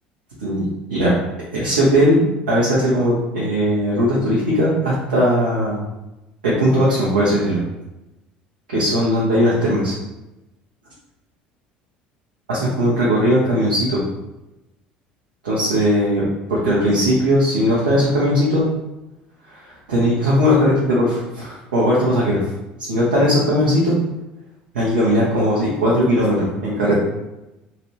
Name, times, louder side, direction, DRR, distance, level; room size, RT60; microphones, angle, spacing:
voice 1, 1.5-5.8 6.4-7.6 8.7-9.9 12.5-14.0 15.4-16.2 16.5-18.6 19.5-22.5 22.9-24.0 24.7-27.0, equal, 80° right, -8 dB, 0.8 m, -18 dB
3.0 x 2.4 x 3.0 m, 0.97 s
figure-of-eight pair, 65°, 5 cm